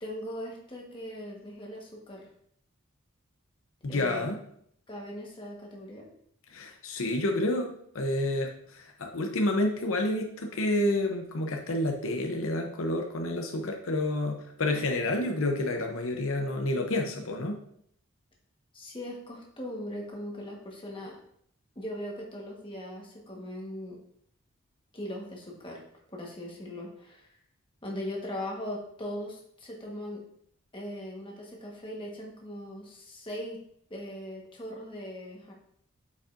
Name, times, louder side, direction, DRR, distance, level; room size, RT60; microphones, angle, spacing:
voice 1, 0.0-2.3 3.9-4.3 4.9-6.1 18.7-21.2 21.7-24.0 24.9-25.8 26.1-27.3 27.8-30.2 30.7-33.6 33.9-35.5, left 1 dB, 25° left, -1 dB, 1.3 m, -39 dB
voice 2, 3.8-4.4 6.5-17.6, left 1 dB, 70° left, 3 dB, 0.7 m, -29 dB
8.3 x 5.3 x 2.6 m, 0.68 s
head